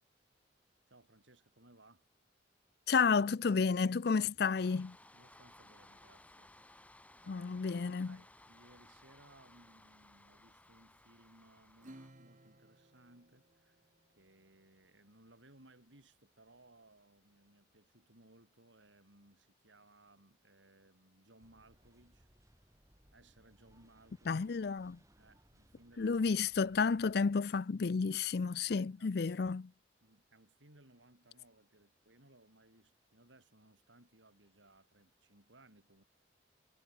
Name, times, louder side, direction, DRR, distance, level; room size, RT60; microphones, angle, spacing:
voice 1, 0.9-2.1 5.1-6.8 7.2-7.6 8.0-13.9 14.2-22.3 23.1-24.5 25.2-26.8 28.6-29.1 30.0-36.0, right 2 dB, 85° right, 6.4 m, -64 dB
voice 2, 2.9-5.0 7.3-8.2 24.3-25.0 26.0-29.7, left 5 dB, 55° left, 0.4 m, -31 dB
sound 1, 4.5-12.1, left 1 dB, 10° left, 2.1 m, -60 dB
Acoustic guitar / Strum, 11.8-14.7, right 1 dB, 40° right, 1.7 m, -59 dB
sound 2, 21.4-27.3, equal, 15° right, 3.7 m, -67 dB
head